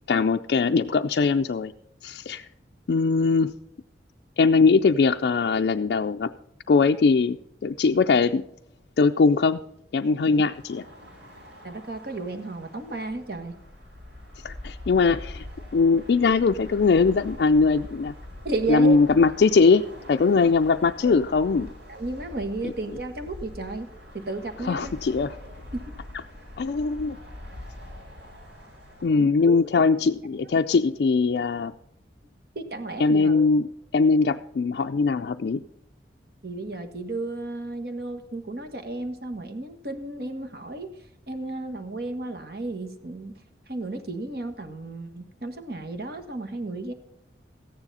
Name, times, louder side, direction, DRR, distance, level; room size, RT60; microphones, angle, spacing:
voice 1, 0.1-1.7 2.0-2.5 2.9-3.5 4.4-6.3 6.7-8.4 9.0-9.6 9.9-10.8 14.4-15.5 15.7-18.1 18.7-19.8 20.1-21.7 24.6-25.4 26.6-27.2 29.0-31.7 33.0-35.6, left 4 dB, 60° left, 5 dB, 0.4 m, -21 dB
sound 1, 10.5-29.1, left 1 dB, 85° right, 4.8 m, -44 dB
voice 2, 11.6-13.6 18.4-19.0 21.0-21.2 21.9-23.9 24.1-24.9 25.7-25.8 29.2-29.6 32.5-33.5 36.4-40.9 41.3-43.3 43.7-46.9, right 2 dB, 55° right, 7 dB, 1.4 m, -33 dB
14.0 x 9.8 x 4.1 m, 0.80 s
head